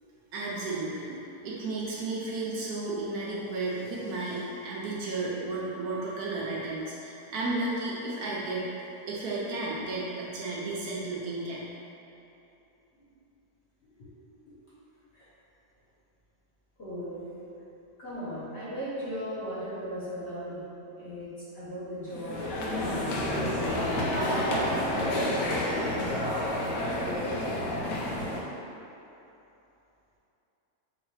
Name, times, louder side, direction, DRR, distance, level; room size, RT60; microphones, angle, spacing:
voice 1, 0.3-1.2 1.4-8.7 9.1-11.6, right 2 dB, 70° right, -6 dB, 1.1 m, -33 dB
voice 2, 16.8-17.3 18.0-20.7 20.9-23.9 24.3-27.8 28.2-28.3 28.6-28.7, equal, 45° left, -11 dB, 1.4 m, -38 dB
sound 1, 22.1-28.4, left 1 dB, 85° left, 1.3 m, -29 dB
5.5 x 2.9 x 3.2 m, 2.9 s
omnidirectional pair, 1.8 m